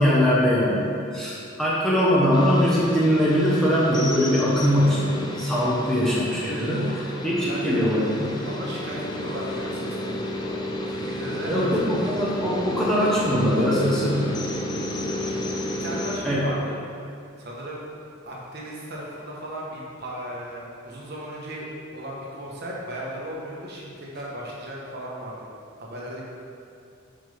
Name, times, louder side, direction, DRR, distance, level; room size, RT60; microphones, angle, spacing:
voice 1, 0.0-6.9 7.2-8.3 11.5-14.3 16.2-16.4, equal, 5° left, -7 dB, 1.0 m, -22 dB
sound 1, 2.3-16.2, left 1 dB, 20° left, 0.4 m, -32 dB
voice 2, 6.4-7.0 7.4-8.1 8.4-10.6 10.9-12.1 14.0-14.4 15.0-15.5 15.8-16.8 17.4-17.9 18.3-25.4 25.8-26.2, equal, 50° right, -4 dB, 1.1 m, -36 dB
7.3 x 5.3 x 3.4 m, 2.5 s
head